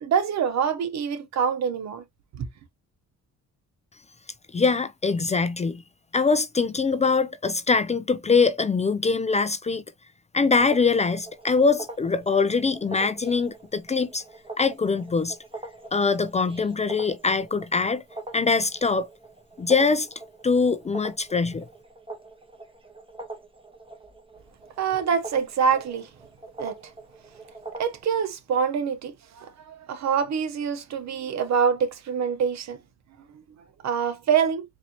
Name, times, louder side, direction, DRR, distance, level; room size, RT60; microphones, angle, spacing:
voice 1, 0.0-2.0 2.3-2.5 24.8-26.1 26.6-26.7 27.8-32.8 33.3-33.4 33.8-34.6, right 7 dB, 65° right, 0.9 m, -25 dB
voice 2, 4.5-5.8 6.1-9.8 10.3-14.2 14.6-15.4 15.9-18.0 18.3-19.1 19.6-20.1 20.4-21.6, left 4 dB, 25° left, 0.4 m, -23 dB
sound 1, 10.6-28.0, right 2 dB, 20° right, 1.2 m, -42 dB
4.2 x 2.7 x 2.8 m
cardioid pair, 90°, 30 cm